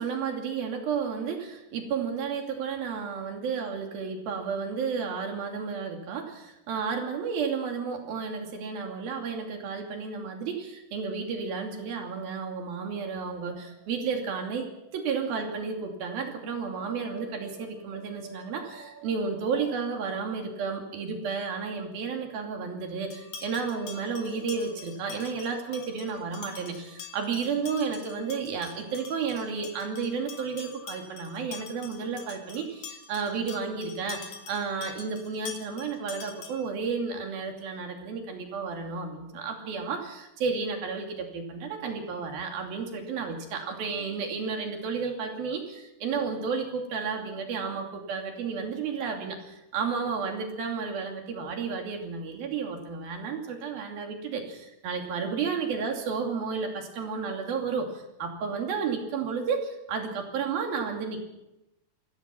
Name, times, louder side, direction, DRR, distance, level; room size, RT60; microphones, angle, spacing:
voice 1, 0.0-61.3, right 5 dB, 80° right, 3 dB, 4.5 m, -32 dB
sound 1, 12.9-26.1, right 2 dB, 25° left, 3.7 m, -51 dB
sound 2, 23.1-36.8, left 6 dB, 80° left, 3.8 m, -45 dB
28.0 x 16.5 x 6.0 m, 0.92 s
omnidirectional pair, 4.2 m